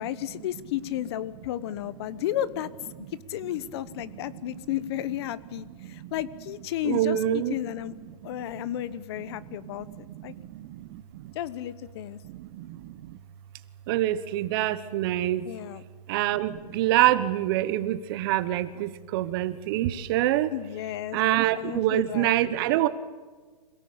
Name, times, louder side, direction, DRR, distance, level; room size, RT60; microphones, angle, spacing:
voice 1, 0.0-2.7 3.0-7.9 8.2-10.3 11.3-12.2 15.4-15.8 20.5-21.2 21.5-22.5, left 13 dB, 40° left, 17 dB, 1.1 m, -33 dB
voice 2, 6.8-7.5 12.6-12.7 13.9-15.4 16.1-20.5 21.1-22.9, right 14 dB, 35° right, 14 dB, 1.2 m, -25 dB
27.0 x 17.5 x 8.7 m, 1.4 s
hypercardioid pair, 150°, 21 cm